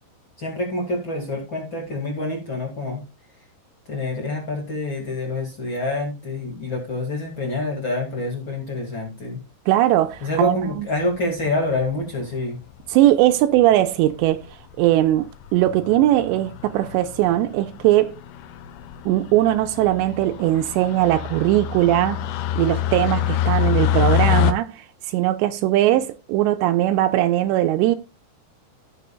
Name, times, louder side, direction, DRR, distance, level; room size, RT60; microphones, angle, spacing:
voice 1, 0.4-3.0 3.9-9.4 10.2-12.6, left 2 dB, 35° left, 2.1 m, -27 dB
voice 2, 9.7-10.9 12.9-14.5 14.8-18.1 19.1-22.3 22.6-24.8 25.1-28.0, right 14 dB, 80° right, 2.8 m, -19 dB
sound 1, 10.6-10.9 11.8-12.2 13.1-13.2 13.4-13.5 13.7-13.8 14.2-14.5 14.9-15.1 15.4-24.5, left 10 dB, 80° left, 2.3 m, -26 dB
17.0 x 6.9 x 2.4 m
omnidirectional pair, 5.3 m